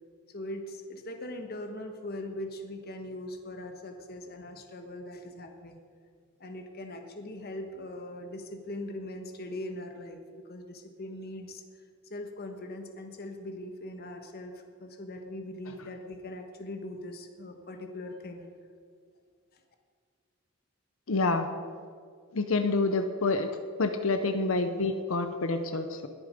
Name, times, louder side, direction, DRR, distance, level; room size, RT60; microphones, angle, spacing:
voice 1, 0.3-5.8 6.4-11.6 12.1-18.5 19.5-19.6, left 1 dB, 45° left, 5 dB, 1.3 m, -41 dB
voice 2, 21.1-21.5 22.3-23.5 23.8-26.1, left 3 dB, 75° left, 8 dB, 0.7 m, -27 dB
20.5 x 7.1 x 5.1 m, 2.1 s
head